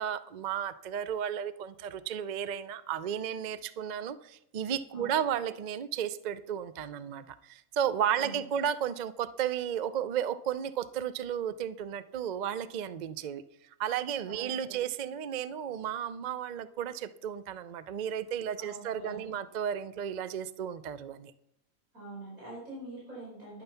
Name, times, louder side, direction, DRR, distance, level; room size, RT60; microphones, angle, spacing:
voice 1, 0.0-13.4 13.8-21.3, right 9 dB, 60° right, 14 dB, 0.4 m, -33 dB
voice 2, 4.9-5.4 8.1-8.4 14.3-14.8 18.6-19.3 21.9-23.6, right 2 dB, 80° right, -6 dB, 5.3 m, -45 dB
10.5 x 10.5 x 5.6 m, 0.76 s
omnidirectional pair, 1.5 m